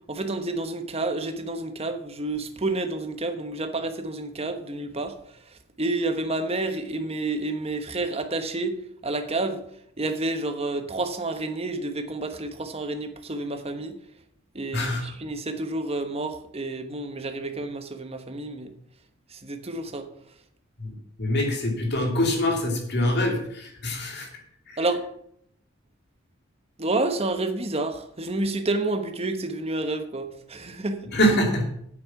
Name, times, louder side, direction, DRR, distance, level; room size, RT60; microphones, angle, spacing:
voice 1, 0.1-5.1 5.5-9.6 10.0-14.0 14.5-18.7 19.3-20.1 24.8-25.1 26.8-31.1, right 2 dB, 30° right, 7 dB, 1.1 m, -29 dB
voice 2, 20.8-24.3 24.7-24.8 31.1-31.6, left 1 dB, 55° left, 2 dB, 2.7 m, -24 dB
8.7 x 8.5 x 5.8 m, 0.69 s
head